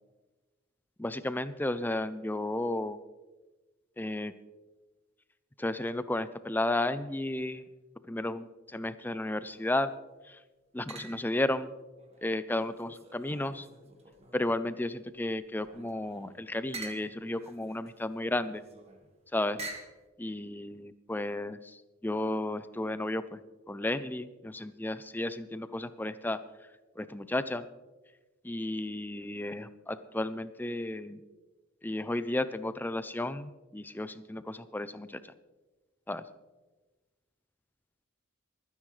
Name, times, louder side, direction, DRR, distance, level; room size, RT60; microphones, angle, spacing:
voice 1, 1.0-3.0 4.0-4.3 5.6-7.6 8.1-9.9 10.3-10.4 10.7-11.7 12.2-13.7 14.3-18.6 19.3-19.6 20.2-23.4 23.7-26.4 27.0-27.7 28.4-31.2 31.8-35.2 36.1-36.2, left 1 dB, 10° left, 13 dB, 0.4 m, -33 dB
sound 1, 9.4-9.9 10.9-11.5 12.0-14.7 15.1-20.0, right 3 dB, 30° right, 1.5 m, -48 dB
26.0 x 9.9 x 3.3 m, 1.2 s
head